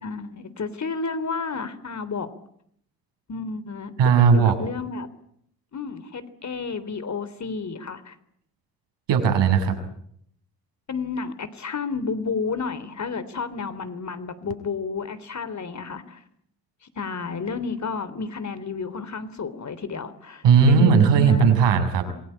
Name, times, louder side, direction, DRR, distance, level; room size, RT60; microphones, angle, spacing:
voice 1, 0.0-2.3 3.3-3.9 4.2-5.1 5.7-8.2 10.9-16.2 17.0-21.6 22.1-22.2, left 4 dB, 35° left, 13 dB, 3.5 m, -31 dB
voice 2, 4.0-4.5 9.1-9.8 20.4-22.0, right 6 dB, 60° right, 8 dB, 6.6 m, -17 dB
27.5 x 22.5 x 8.8 m, 0.70 s
hypercardioid pair, 50°, 48 cm